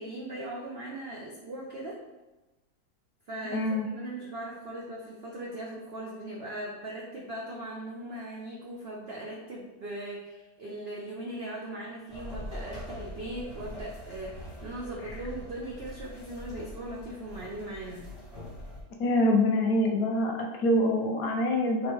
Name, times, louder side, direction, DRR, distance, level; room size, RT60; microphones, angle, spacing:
voice 1, 0.0-2.0 3.3-18.1, right 1 dB, 70° right, -3 dB, 0.5 m, -39 dB
voice 2, 3.5-3.9 19.0-21.9, left 1 dB, 70° left, 2 dB, 1.0 m, -25 dB
sound 1, 12.1-18.8, equal, 15° left, 0.9 m, -43 dB
3.2 x 3.1 x 4.6 m, 1.1 s
omnidirectional pair, 1.8 m